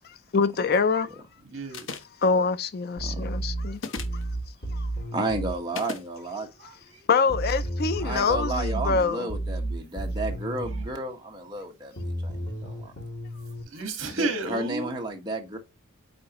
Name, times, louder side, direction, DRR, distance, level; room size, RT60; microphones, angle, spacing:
voice 1, 0.3-1.2 2.2-3.8 4.7-4.9 7.1-9.3, left 4 dB, 45° left, 0.4 m, -25 dB
voice 2, 1.4-1.9 6.4-7.1 13.7-14.9, right 3 dB, 60° right, 1.6 m, -32 dB
sound 1, 1.7-2.2 3.7-4.2 5.7-6.1, left 4 dB, 60° left, 0.8 m, -35 dB
sound 2, 3.0-5.6 7.3-10.9 12.0-13.6, right 1 dB, 75° left, 2.8 m, -32 dB
voice 3, 5.1-6.5 8.0-12.9 14.1-15.6, right 2 dB, 20° right, 1.2 m, -32 dB
8.6 x 3.8 x 3.0 m
head